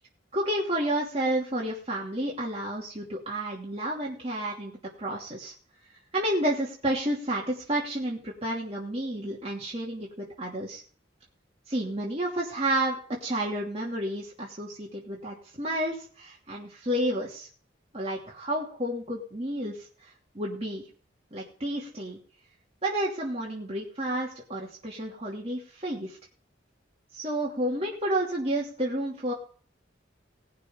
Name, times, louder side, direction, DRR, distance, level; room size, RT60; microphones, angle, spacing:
voice 1, 0.3-4.7 5.0-5.5 6.1-10.8 11.7-17.5 17.9-19.8 20.3-20.8 21.3-22.2 22.8-26.2 27.1-29.3, right 1 dB, 30° right, -4 dB, 2.8 m, -30 dB
18.5 x 6.8 x 5.1 m, 0.43 s
head